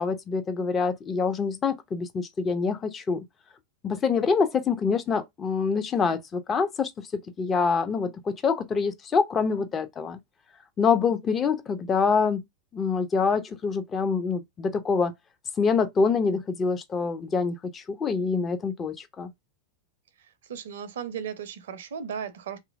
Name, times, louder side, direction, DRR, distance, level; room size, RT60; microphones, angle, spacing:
voice 1, 0.0-3.2 3.8-10.2 10.8-12.4 12.7-15.1 15.6-19.3, left 5 dB, 25° left, 0.4 m, -26 dB
voice 2, 20.5-22.6, right 7 dB, 60° right, 0.5 m, -35 dB
2.9 x 2.4 x 2.3 m
figure-of-eight pair, 90°, 0 cm